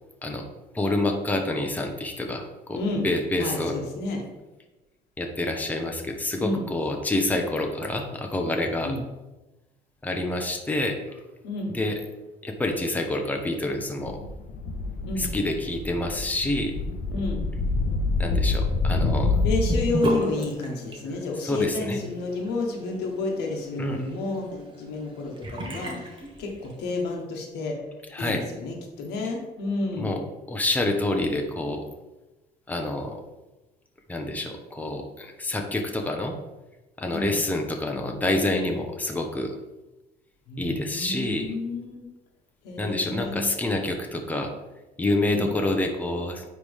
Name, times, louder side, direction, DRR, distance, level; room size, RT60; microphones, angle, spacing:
voice 1, 0.7-3.8 5.2-8.9 10.0-11.2 11.7-12.0 12.4-14.2 15.2-16.8 18.2-19.4 21.4-22.0 23.8-24.1 28.1-28.4 30.0-30.2 30.5-31.8 32.7-33.2 34.1-36.4 37.0-39.5 40.6-41.5 42.8-44.5 45.0-46.4, left 2 dB, 10° left, 3 dB, 0.8 m, -27 dB
voice 2, 2.7-3.1 3.4-4.2 6.4-6.6 8.8-9.0 11.4-11.8 15.1-15.3 17.1-17.4 19.4-27.8 28.2-30.1 37.1-37.3 40.5-42.0 42.6-43.5 45.3-45.5, left 3 dB, 85° left, 1 dB, 1.4 m, -30 dB
sound 1, 14.0-19.9, left 3 dB, 60° left, 0.8 m, -26 dB
Sink (filling or washing) / Bathtub (filling or washing), 19.7-27.0, right 2 dB, 30° right, 1.4 m, -36 dB
9.6 x 3.3 x 3.5 m, 1.1 s
cardioid pair, 110°, 17 cm